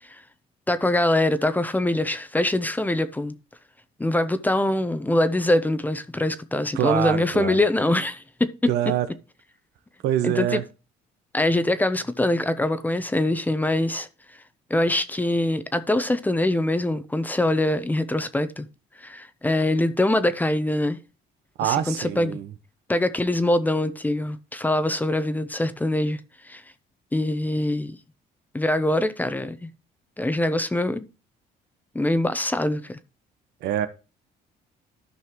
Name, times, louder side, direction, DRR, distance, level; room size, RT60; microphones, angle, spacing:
voice 1, 0.7-3.3 4.0-8.7 10.2-10.6 11.3-14.1 14.7-18.7 19.0-21.0 21.6-22.4 22.9-26.2 26.4-26.6 27.1-27.9 28.5-29.7 30.2-31.1 31.9-33.0, left 1 dB, 10° left, 0.7 m, -23 dB
voice 2, 6.7-7.6 8.7-9.1 10.0-10.6 21.6-22.5 33.6-33.9, right 11 dB, 80° right, 1.0 m, -25 dB
13.0 x 5.5 x 3.1 m
cardioid pair, 110°, 17 cm